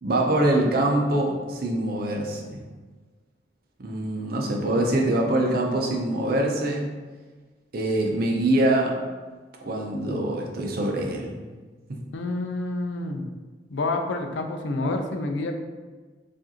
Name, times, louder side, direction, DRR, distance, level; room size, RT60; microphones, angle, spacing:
voice 1, 0.0-2.6 3.8-6.9 7.7-9.0 9.6-11.4 11.9-12.0, right 1 dB, 55° right, 0 dB, 0.6 m, -24 dB
voice 2, 12.1-13.3 13.7-15.6, left 2 dB, 80° left, 4 dB, 0.4 m, -28 dB
4.6 x 2.6 x 2.9 m, 1.3 s
head